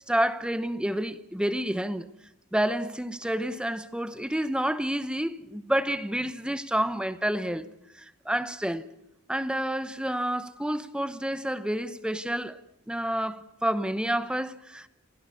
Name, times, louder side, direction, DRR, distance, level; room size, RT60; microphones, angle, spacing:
voice 1, 0.1-2.1 2.5-7.7 8.0-8.8 9.3-12.6 12.9-14.9, right 1 dB, 5° right, 0.9 m, -29 dB
27.0 x 17.0 x 8.4 m
head